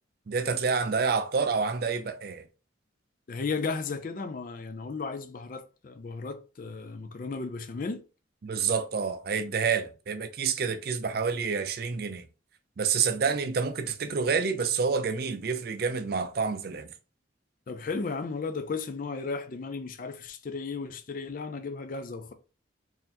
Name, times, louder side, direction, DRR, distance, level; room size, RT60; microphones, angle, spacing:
voice 1, 0.3-2.4 8.4-12.2 12.8-16.9, right 5 dB, 50° right, 0.4 m, -28 dB
voice 2, 3.3-8.0 17.7-22.3, left 4 dB, 45° left, 0.4 m, -35 dB
3.9 x 2.6 x 2.8 m
head